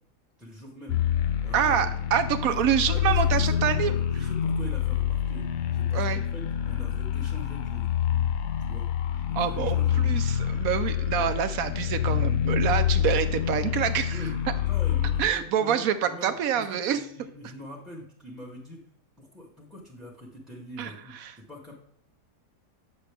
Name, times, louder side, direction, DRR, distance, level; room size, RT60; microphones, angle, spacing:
voice 1, 0.4-1.0 1.4-1.9 2.4-5.4 5.7-7.9 8.6-8.9 9.3-10.0 11.1-11.3 14.1-14.3 14.6-18.8 19.2-21.7, left 1 dB, ahead, -3 dB, 0.8 m, -43 dB
sound 1, 0.9-15.2, left 9 dB, 85° left, 1.2 m, -27 dB
voice 2, 1.5-3.9 5.9-6.2 9.4-9.8 10.0-14.2 15.2-17.0 20.8-21.3, right 9 dB, 70° right, 10 dB, 0.9 m, -26 dB
8.1 x 6.5 x 3.3 m, 0.68 s
omnidirectional pair, 1.8 m